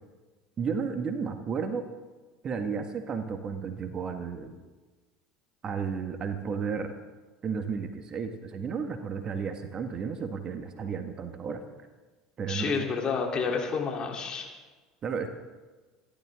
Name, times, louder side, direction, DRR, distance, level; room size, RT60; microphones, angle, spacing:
voice 1, 0.6-1.8 2.4-4.5 5.6-6.9 7.4-11.6 12.4-12.9 15.0-15.3, right 6 dB, 40° right, 6 dB, 1.8 m, -33 dB
voice 2, 12.5-14.5, left 5 dB, 35° left, 1 dB, 3.7 m, -29 dB
26.5 x 12.5 x 3.8 m, 1.3 s
hypercardioid pair, 70°, 2 cm